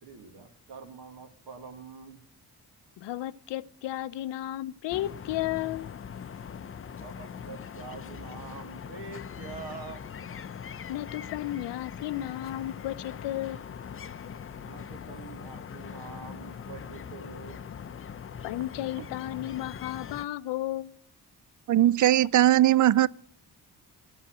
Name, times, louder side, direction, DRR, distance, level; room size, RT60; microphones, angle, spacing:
voice 1, 0.0-2.2 7.0-10.0 14.6-17.6, right 5 dB, 70° right, 1.7 m, -45 dB
voice 2, 3.0-5.9 10.9-13.6 18.4-21.0, left 14 dB, 85° left, 0.6 m, -33 dB
sound 1, 4.9-20.2, left 7 dB, 30° left, 0.5 m, -41 dB
voice 3, 21.7-23.1, right 13 dB, 45° right, 0.4 m, -20 dB
10.5 x 5.6 x 8.7 m
cardioid pair, 60°, 42 cm